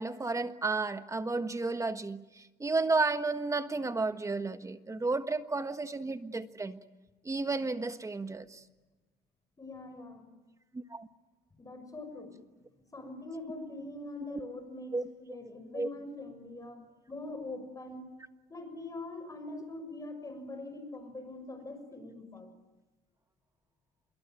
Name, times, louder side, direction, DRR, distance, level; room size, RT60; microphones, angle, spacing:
voice 1, 0.0-6.8 7.2-8.6 10.7-11.1 14.3-14.4 14.9-15.0 15.7-15.9, right 3 dB, 20° right, 10 dB, 1.4 m, -32 dB
voice 2, 9.6-10.2 11.6-12.4 12.9-18.0 18.5-22.5, left 2 dB, 20° left, 8 dB, 6.1 m, -43 dB
26.0 x 23.0 x 9.1 m, 1.2 s
cardioid pair, 110°, 17 cm